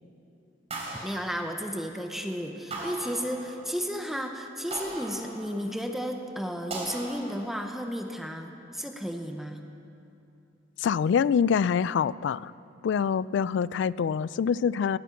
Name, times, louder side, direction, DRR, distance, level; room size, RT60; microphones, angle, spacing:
sound 1, 0.7-2.1 2.7-3.9 4.7-5.9 6.7-7.9, right 2 dB, 35° right, 3.3 m, -39 dB
voice 1, 1.0-9.6, equal, ahead, 4 dB, 0.8 m, -33 dB
voice 2, 10.8-12.5 12.8-15.0, left 7 dB, 70° left, 20 dB, 0.3 m, -25 dB
19.0 x 10.0 x 7.1 m, 2.8 s
head